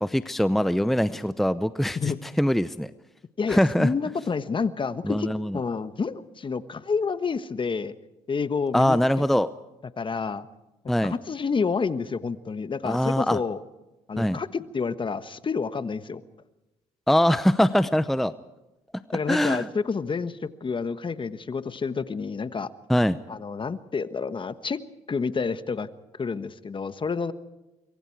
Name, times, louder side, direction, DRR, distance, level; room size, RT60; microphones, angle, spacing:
voice 1, 0.0-2.9 3.5-3.9 5.0-5.6 8.7-9.5 10.9-11.1 12.8-13.4 14.2-14.4 17.1-18.3 18.9-19.7 22.9-23.2, equal, ahead, 14 dB, 0.7 m, -23 dB
voice 2, 3.4-7.9 8.3-9.0 10.0-10.5 11.0-13.6 14.1-16.2 19.1-22.7 23.3-24.8 25.1-25.9 26.1-27.3, left 5 dB, 35° left, 12 dB, 1.3 m, -29 dB
25.5 x 23.0 x 4.7 m, 1.0 s
supercardioid pair, 65°, 14 cm